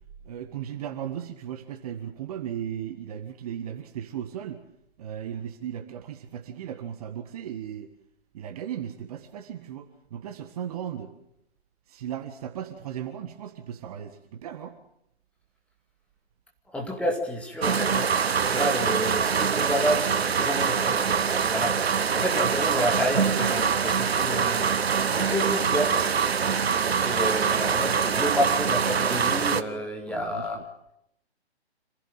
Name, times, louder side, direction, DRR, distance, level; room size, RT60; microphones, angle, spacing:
voice 1, 0.2-4.6 5.0-7.9 8.3-11.1 11.9-14.8 30.1-30.6, right 9 dB, 35° right, 6 dB, 1.6 m, -36 dB
voice 2, 16.7-26.0 26.9-30.6, equal, 5° left, 1 dB, 2.3 m, -30 dB
sound 1, 17.6-29.6, right 6 dB, 65° right, 1.2 m, -24 dB
26.5 x 16.0 x 7.5 m, 0.78 s
figure-of-eight pair, 130°, 33 cm